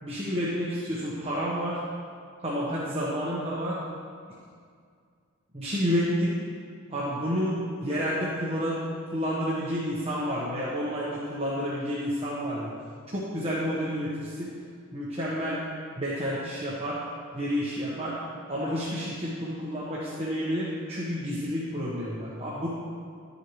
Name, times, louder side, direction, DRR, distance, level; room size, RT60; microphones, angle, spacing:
voice 1, 0.0-1.8 2.4-3.8 5.5-6.4 6.9-7.6 7.8-8.8 9.1-12.7 13.1-14.5 14.9-15.6 16.0-17.0 17.3-18.2 18.5-22.7, equal, 30° right, -8 dB, 1.2 m, -30 dB
12.0 x 8.0 x 3.2 m, 2.2 s
head